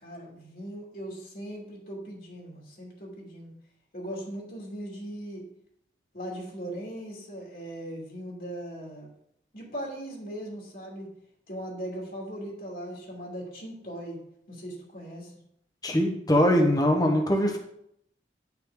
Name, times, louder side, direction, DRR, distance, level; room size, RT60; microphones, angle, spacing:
voice 1, 0.0-3.5 3.9-5.4 6.1-9.1 9.5-11.1 11.5-14.2 14.5-15.3, right 1 dB, 50° left, -3 dB, 2.6 m, -39 dB
voice 2, 15.8-17.6, equal, 20° left, 2 dB, 1.3 m, -22 dB
10.5 x 5.9 x 4.0 m, 0.74 s
head